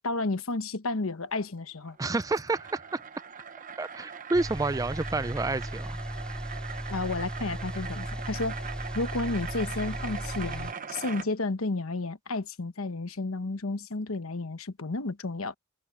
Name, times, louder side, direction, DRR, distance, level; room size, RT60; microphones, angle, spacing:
voice 1, 0.0-2.0 6.9-8.7 8.9-15.5, left 2 dB, 90° left, 1.1 m, -32 dB
sound 1, 1.8-11.3, right 6 dB, 40° right, 0.9 m, -41 dB
voice 2, 2.0-3.0 3.8-6.0, right 3 dB, 15° right, 0.4 m, -29 dB
sound 2, 4.3-10.7, equal, 5° left, 2.8 m, -37 dB
head